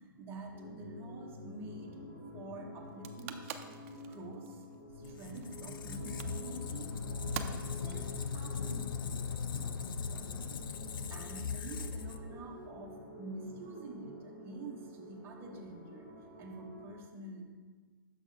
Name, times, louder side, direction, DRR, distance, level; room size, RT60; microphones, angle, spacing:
voice 1, 0.0-3.6 4.1-4.6 4.9-7.0 7.5-9.7 10.1-10.6 11.1-17.5, right 2 dB, 20° right, 0 dB, 0.8 m, -48 dB
sound 1, 0.5-17.0, equal, 20° left, 1.2 m, -49 dB
sound 2, 2.8-9.2, right 8 dB, 40° right, 0.4 m, -47 dB
Squeak, 4.9-12.7, left 5 dB, 65° left, 0.5 m, -39 dB
6.3 x 4.0 x 5.0 m, 1.5 s
hypercardioid pair, 140°, 12 cm